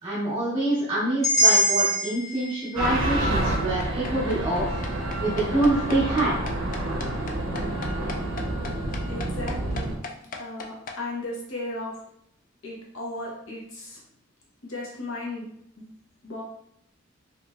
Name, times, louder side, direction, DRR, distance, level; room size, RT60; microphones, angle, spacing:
voice 1, 0.0-6.3, right 2 dB, 25° right, -9 dB, 0.7 m, -26 dB
sound 1, 1.2-5.3, right 1 dB, 15° left, 0.8 m, -26 dB
sound 2, 2.8-10.0, right 1 dB, 80° right, 0.5 m, -28 dB
sound 3, 3.0-11.0, left 3 dB, 40° left, 0.3 m, -37 dB
voice 2, 9.1-10.0 10.4-12.0 12.6-14.0 14.6-15.9 16.2-16.4, left 2 dB, 75° left, -3 dB, 0.9 m, -36 dB
3.0 x 2.7 x 2.3 m, 0.70 s
head